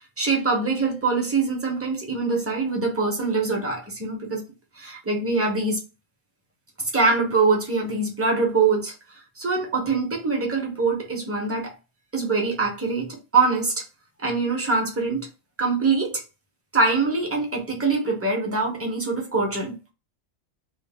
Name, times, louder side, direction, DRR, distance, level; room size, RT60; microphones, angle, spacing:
voice 1, 0.2-4.4 4.8-5.8 6.9-8.9 9.4-11.7 12.1-13.7 14.2-15.3 15.6-16.2 16.7-19.8, right 4 dB, 20° right, 0.3 m, -23 dB
2.5 x 2.1 x 3.3 m
omnidirectional pair, 1.4 m